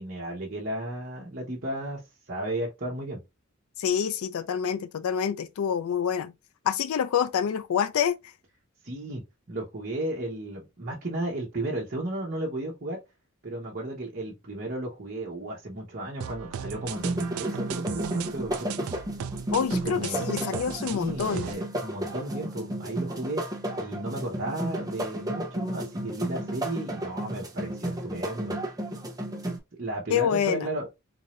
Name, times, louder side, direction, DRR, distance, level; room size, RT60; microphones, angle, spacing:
voice 1, 0.0-2.0 2.3-3.2 8.8-9.2 9.5-13.0 13.4-18.9 19.8-20.3 20.8-28.5 29.8-30.9, right 1 dB, 45° right, 1.1 m, -34 dB
voice 2, 3.8-6.3 6.7-8.2 19.5-21.5 30.1-30.7, left 8 dB, 80° left, 0.4 m, -27 dB
sound 1, 16.2-21.5, right 8 dB, 85° right, 0.4 m, -37 dB
sound 2, 16.9-29.6, right 1 dB, 15° right, 0.8 m, -33 dB
3.9 x 2.7 x 3.1 m
head